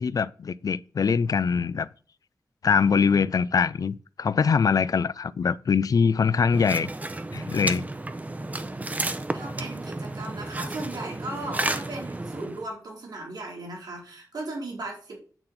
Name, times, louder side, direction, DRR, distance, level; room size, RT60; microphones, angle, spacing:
voice 1, 0.0-1.9 2.6-6.9 7.3-7.9, left 6 dB, 65° left, 0.4 m, -23 dB
sound 1, 6.5-12.7, right 2 dB, 25° right, 0.7 m, -32 dB
voice 2, 9.3-15.2, right 2 dB, 85° right, 2.8 m, -37 dB
8.8 x 3.9 x 5.8 m
wide cardioid pair, 115°, 7 cm